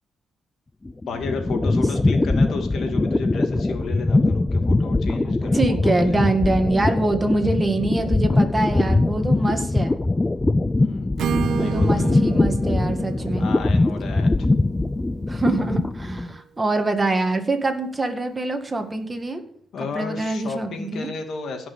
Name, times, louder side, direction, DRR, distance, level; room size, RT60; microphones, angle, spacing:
sound 1, 0.8-16.3, left 2 dB, 15° left, 0.5 m, -22 dB
voice 1, 1.1-6.3 9.3-9.6 10.8-11.1 11.5-12.1 13.4-14.3 19.7-21.7, left 4 dB, 65° left, 4 dB, 2.4 m, -33 dB
voice 2, 5.5-10.0 11.6-13.5 15.3-19.4 19.9-21.1, right 2 dB, 20° right, 5 dB, 2.1 m, -24 dB
Acoustic guitar / Strum, 11.2-15.1, right 9 dB, 70° right, 0.4 m, -31 dB
16.5 x 6.0 x 7.1 m, 0.64 s
cardioid pair, 90°, 0 cm